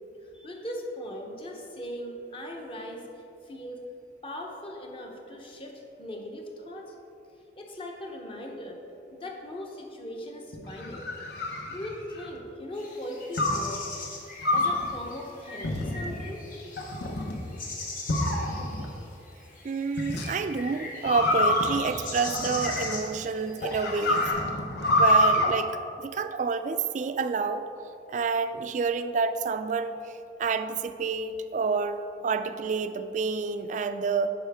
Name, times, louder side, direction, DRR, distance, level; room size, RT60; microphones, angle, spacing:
voice 1, 0.2-3.1 3.4-3.8 4.2-6.9 7.6-8.8 9.1-11.1 11.7-13.8 14.5-16.4, equal, 30° left, 1 dB, 0.8 m, -39 dB
sound 1, 10.5-12.4 13.4-13.7 14.4-14.9 15.6-16.2 16.8-17.4 18.1-18.9 20.0-20.3 21.1-23.1 23.6-25.5, left 1 dB, 70° left, 0.9 m, -26 dB
sound 2, 12.7-24.3, left 3 dB, 50° left, 1.2 m, -41 dB
voice 2, 19.6-24.3 25.0-27.6 28.1-30.0 30.4-34.3, right 4 dB, 45° right, 10 dB, 0.3 m, -29 dB
8.8 x 5.6 x 3.5 m, 2.7 s
head